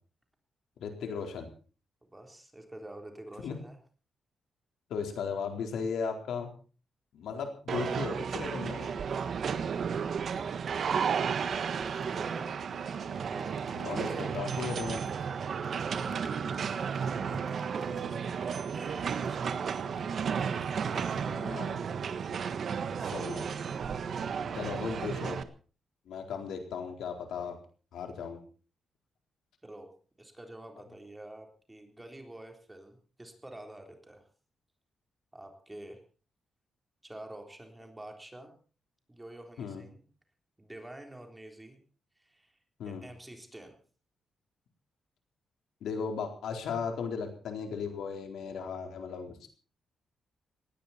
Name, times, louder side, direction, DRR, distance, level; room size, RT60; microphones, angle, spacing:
voice 1, 0.8-1.5 3.4-3.6 4.9-6.5 7.1-9.0 13.7-15.0 21.3-21.7 23.0-23.5 24.5-25.4 26.1-27.6 27.9-28.4 39.6-39.8 42.8-43.0 45.8-49.5, left 6 dB, 85° left, 4 dB, 4.1 m, -36 dB
voice 2, 2.1-3.8 10.3-12.5 13.3-14.3 15.5-18.0 18.5-19.8 20.7-21.7 29.6-29.9 30.2-34.3 35.3-36.0 37.0-38.5 39.1-40.0 40.6-41.8 42.2-42.5 42.9-43.8, right 1 dB, 10° right, 3 dB, 3.8 m, -48 dB
sound 1, 7.7-25.4, right 6 dB, 50° right, 1.4 m, -33 dB
sound 2, 11.9-21.2, left 3 dB, 35° left, 4.5 m, -58 dB
19.5 x 16.5 x 4.3 m, 0.39 s
wide cardioid pair, 145°, 0 cm